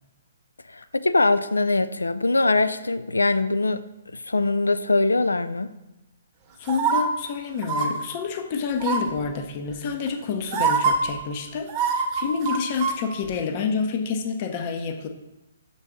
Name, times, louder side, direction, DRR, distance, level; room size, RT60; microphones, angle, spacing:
voice 1, 0.7-3.8 4.1-5.7, left 2 dB, 85° left, 0.3 m, -22 dB
voice 2, 6.6-15.1, left 5 dB, 40° left, 0.7 m, -28 dB
sound 1, 6.7-7.0 7.6-7.9 8.8-9.2 10.1-10.2 10.5-10.9 11.7-13.0 13.3-13.4, right 6 dB, 30° right, 1.0 m, -23 dB
6.5 x 4.0 x 3.6 m
figure-of-eight pair, 130°, 0 cm